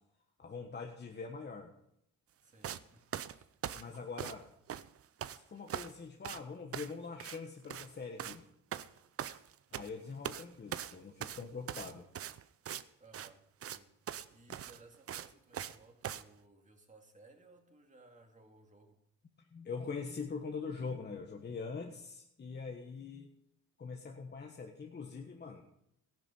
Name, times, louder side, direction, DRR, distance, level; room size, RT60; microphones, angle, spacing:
voice 1, 0.4-1.7 3.7-4.5 5.3-8.4 9.7-12.0 19.5-23.3 23.8-25.6, left 5 dB, 35° left, 1.4 m, -43 dB
voice 2, 2.4-3.5 13.0-13.9 14.3-19.0, right 2 dB, 25° right, 2.4 m, -61 dB
sound 1, 2.6-2.8 3.1-4.4 4.7-5.4 5.7-6.0 6.2-6.4 6.7-6.9 7.2-7.4 7.6-7.9 8.2-8.4 8.7-9.9 10.2-10.4 10.7-12.8 13.1-13.3 13.6-13.8 14.1-14.3 14.5-15.8 16.0-16.2, right 10 dB, 50° right, 0.7 m, -41 dB
14.5 x 10.5 x 5.6 m
cardioid pair, 90°, 30 cm